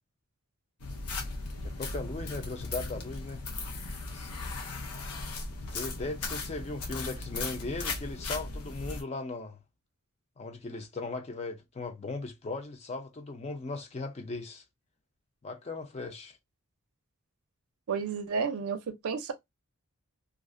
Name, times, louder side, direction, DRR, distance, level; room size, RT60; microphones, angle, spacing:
sound 1, 0.8-9.0, left 3 dB, 85° left, 0.6 m, -37 dB
voice 1, 1.8-3.4 4.1-4.3 5.7-9.6 10.4-14.6 15.4-16.4, left 3 dB, 30° left, 0.4 m, -38 dB
voice 2, 17.9-19.3, right 5 dB, 75° right, 0.5 m, -31 dB
2.4 x 2.0 x 2.5 m
head